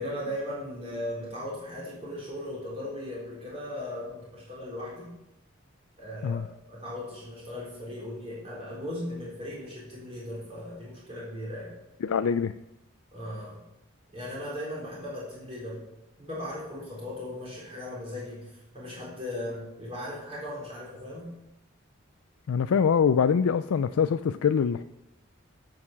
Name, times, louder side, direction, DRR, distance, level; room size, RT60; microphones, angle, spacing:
voice 1, 0.0-5.1 6.0-6.4 6.7-11.7 13.1-13.6 14.1-15.8 16.2-21.3, left 1 dB, 25° right, -6 dB, 3.7 m, -37 dB
voice 2, 12.0-12.5 22.5-24.8, left 6 dB, 90° left, 11 dB, 0.4 m, -24 dB
12.5 x 6.7 x 5.8 m, 0.90 s
head